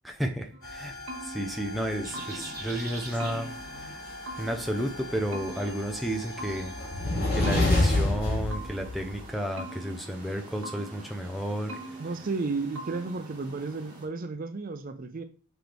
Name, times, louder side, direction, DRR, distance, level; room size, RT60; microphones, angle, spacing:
voice 1, 0.0-0.9 1.2-3.5 3.8-3.9 4.4-6.7 7.3-11.7, equal, ahead, 2 dB, 0.7 m, -32 dB
sound 1, 0.5-2.7 3.2-4.9 5.3-7.0 7.4-9.1 9.6-11.2 11.7-12.5 12.8-13.4, right 1 dB, 75° right, 1.7 m, -43 dB
sound 2, 0.6-9.3, left 2 dB, 40° left, 3.0 m, -31 dB
sound 3, 2.0-14.1, right 2 dB, 15° right, 2.0 m, -47 dB
voice 2, 12.0-15.2, right 3 dB, 40° right, 8 dB, 0.4 m, -33 dB
6.0 x 4.5 x 3.4 m, 0.38 s
head